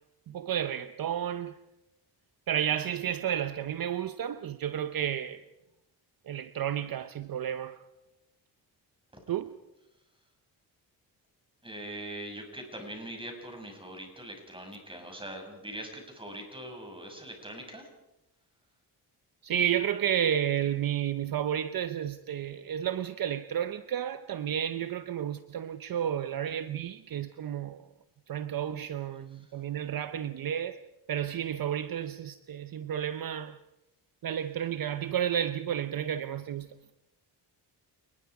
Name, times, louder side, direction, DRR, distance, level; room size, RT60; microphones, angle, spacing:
voice 1, 0.3-1.6 2.5-5.4 6.3-7.8 9.3-9.5 19.4-27.8 28.3-30.8 31.1-33.6 34.2-36.7, right 9 dB, 55° right, 0.9 m, -31 dB
voice 2, 11.6-17.9 29.3-29.5, right 1 dB, 10° right, 6.7 m, -42 dB
28.5 x 20.0 x 4.9 m
cardioid pair, 90°, 42 cm